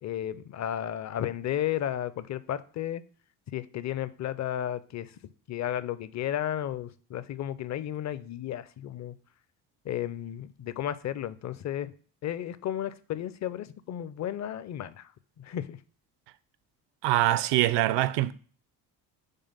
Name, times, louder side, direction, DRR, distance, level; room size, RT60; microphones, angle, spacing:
voice 1, 0.0-3.0 3.5-9.1 9.8-11.9 12.2-15.1 15.4-15.8, left 11 dB, 35° left, 0.5 m, -33 dB
voice 2, 17.0-18.3, right 15 dB, 60° right, 0.6 m, -24 dB
5.5 x 3.4 x 5.5 m
hypercardioid pair, 50°, 47 cm